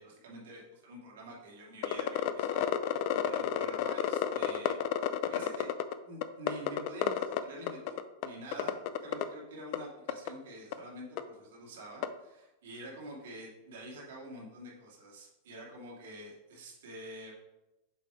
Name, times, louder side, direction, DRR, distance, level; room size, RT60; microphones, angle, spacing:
voice 1, 0.0-5.7 6.0-17.3, right 1 dB, 80° right, -3 dB, 2.1 m, -47 dB
sound 1, 1.8-5.9 6.2-7.4 7.7-8.3 8.5-9.2 9.7-9.8 10.1-10.3 10.7-10.8 11.2-11.3 12.0-12.1, left 11 dB, 55° left, 0.4 m, -30 dB
7.4 x 2.7 x 4.8 m, 0.96 s
hypercardioid pair, 120°, 0 cm